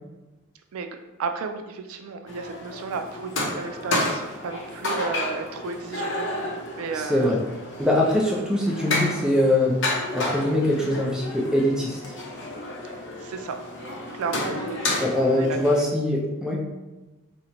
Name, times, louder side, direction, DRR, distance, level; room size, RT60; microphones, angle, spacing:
voice 1, 1.2-6.4 6.8-7.3 13.2-13.6 14.1-15.6, right 5 dB, 90° right, 6 dB, 0.3 m, -33 dB
sound 1, 2.3-15.8, left 1 dB, 60° left, 0.6 m, -31 dB
voice 2, 6.9-7.4 7.8-9.8 10.1-12.0 15.0-16.6, left 1 dB, 5° right, -2 dB, 0.3 m, -22 dB
2.9 x 2.1 x 3.7 m, 1.1 s
head